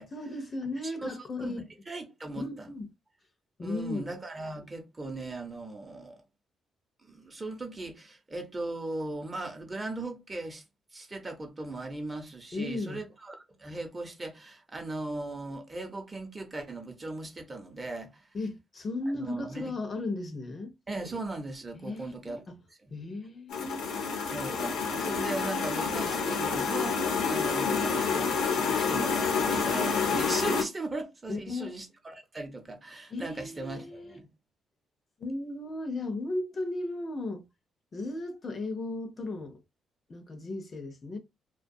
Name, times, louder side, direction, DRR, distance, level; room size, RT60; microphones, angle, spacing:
voice 1, 0.1-1.7 2.3-2.9 3.6-4.0 12.5-13.0 18.3-20.7 21.8-22.6 22.9-23.9 31.3-31.8 33.1-34.2 35.2-37.5 37.9-39.6 40.1-41.2, left 2 dB, 40° left, 0.6 m, -35 dB
voice 2, 0.8-2.7 3.6-6.2 7.0-10.6 10.9-18.3 19.1-19.7 20.9-22.4 22.8-22.9 24.3-34.3, right 2 dB, 25° right, 0.7 m, -38 dB
sound 1, 23.5-30.6, left 5 dB, 85° left, 0.7 m, -28 dB
2.2 x 2.2 x 2.6 m
cardioid pair, 90°, 0 cm